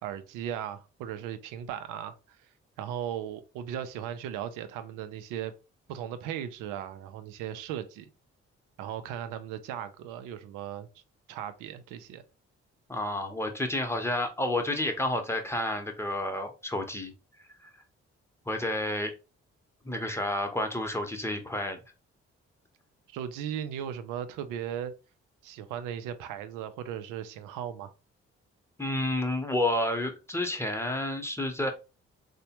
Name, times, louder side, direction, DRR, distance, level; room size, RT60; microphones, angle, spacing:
voice 1, 0.0-2.4 2.8-5.5 5.9-8.1 8.8-10.9 11.3-12.2 23.1-24.9 25.4-27.9, right 10 dB, 80° right, 0.5 m, -37 dB
voice 2, 12.9-17.1 18.5-19.1 19.8-21.8 28.8-31.7, left 1 dB, 10° left, 0.8 m, -30 dB
3.2 x 2.1 x 2.8 m
hypercardioid pair, 45°, 31 cm